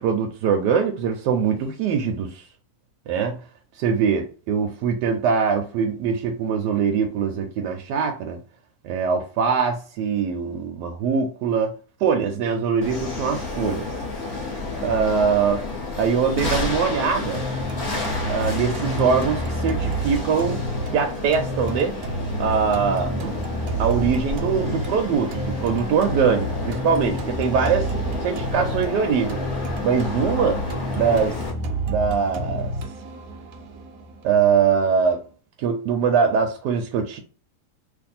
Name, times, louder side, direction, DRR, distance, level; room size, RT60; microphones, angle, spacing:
voice 1, 0.0-2.4 3.1-3.4 3.8-8.4 8.8-13.9 14.8-15.6 16.0-17.4 18.3-20.6 20.9-22.0 22.4-23.4 23.8-27.9 28.2-29.4 29.8-30.7 30.9-31.4 31.9-32.7 34.2-35.2 35.6-37.2, right 6 dB, 90° right, 1.2 m, -22 dB
sound 1, 12.8-31.5, left 3 dB, 35° left, 1.4 m, -31 dB
sound 2, 17.3-35.3, right 1 dB, 65° right, 1.0 m, -30 dB
2.9 x 2.5 x 4.1 m
omnidirectional pair, 1.8 m